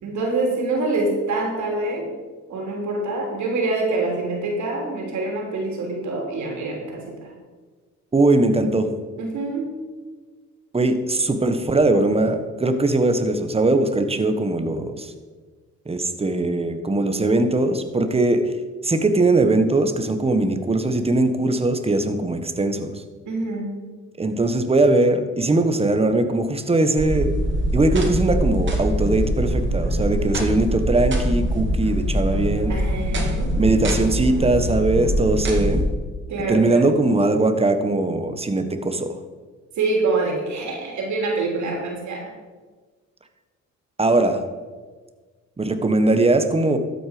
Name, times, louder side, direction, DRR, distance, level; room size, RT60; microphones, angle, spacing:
voice 1, 0.0-2.1 2.5-7.3 9.2-9.7 23.3-23.7 32.7-33.5 36.3-36.9 39.8-42.3, right 3 dB, 70° right, 0 dB, 3.1 m, -25 dB
voice 2, 8.1-8.9 10.7-15.1 15.9-18.5 18.8-23.0 24.2-27.3 27.7-32.8 33.5-35.8 36.5-39.2 44.0-44.4 45.6-46.8, right 2 dB, 20° right, 8 dB, 1.2 m, -20 dB
sound 1, 27.0-35.8, right 1 dB, 40° right, 2.5 m, -23 dB
12.5 x 8.1 x 5.0 m, 1.4 s
cardioid pair, 90°, 30 cm